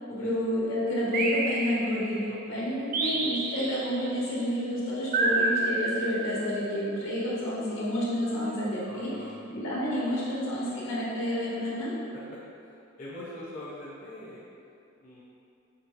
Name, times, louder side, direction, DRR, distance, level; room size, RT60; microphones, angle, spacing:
voice 1, 0.1-12.0, left 1 dB, 75° left, -7 dB, 1.1 m, -30 dB
sound 1, 1.1-2.3 2.9-4.1 5.1-6.6, right 3 dB, 45° right, 0.3 m, -29 dB
voice 2, 2.3-2.6 8.8-9.4 13.0-14.4 15.0-15.2, left 1 dB, 40° left, -9 dB, 0.6 m, -43 dB
5.2 x 2.8 x 3.0 m, 2.6 s
head